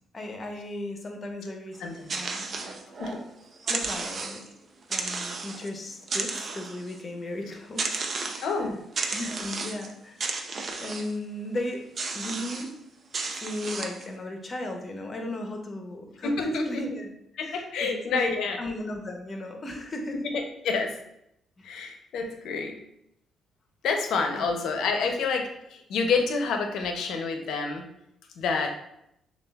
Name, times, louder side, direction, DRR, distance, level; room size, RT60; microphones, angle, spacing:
voice 1, 0.1-2.8 3.6-4.4 4.9-7.9 8.3-8.7 9.1-10.4 10.8-11.8 12.1-12.8 13.4-20.3 21.6-21.7 22.2-22.3 24.3-24.5 25.0-25.1, left 1 dB, 35° left, 3 dB, 0.8 m, -36 dB
sound 1, 1.7-3.2 3.6-4.5 4.9-5.7 6.0-7.0 7.8-8.5 8.9-9.9 10.2-11.2 12.0-12.7 13.1-14.1, right 4 dB, 45° right, 0.5 m, -33 dB
voice 2, 8.4-8.8 16.2-16.8 17.4-18.6 20.6-20.9 21.6-22.8 23.8-25.5 25.9-27.8 28.4-28.7, left 4 dB, 75° left, 4 dB, 0.6 m, -28 dB
6.5 x 2.4 x 2.3 m, 0.78 s
cardioid pair, 90°, 0 cm